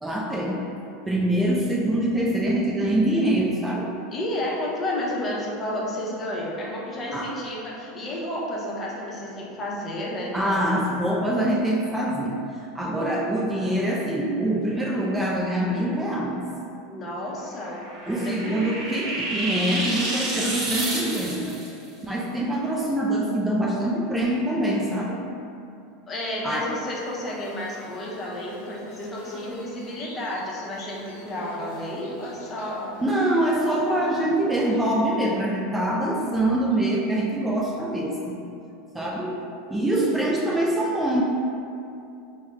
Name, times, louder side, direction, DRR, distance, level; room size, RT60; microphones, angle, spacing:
voice 1, 0.0-3.9 7.1-7.3 10.3-12.4 12.7-16.5 18.1-21.6 22.0-25.2 26.4-26.7 33.0-38.4 38.9-39.4 39.7-41.2, right 1 dB, 10° right, -4 dB, 0.3 m, -24 dB
voice 2, 4.1-10.7 16.9-18.7 26.1-32.9 39.9-40.4, left 1 dB, 30° left, -4 dB, 0.7 m, -31 dB
sound 1, 17.5-21.7, right 2 dB, 50° right, 0.9 m, -29 dB
Bird / Buzz, 26.6-34.3, left 2 dB, 75° left, 0.7 m, -44 dB
3.4 x 2.1 x 3.3 m, 2.6 s
hypercardioid pair, 105°, 0 cm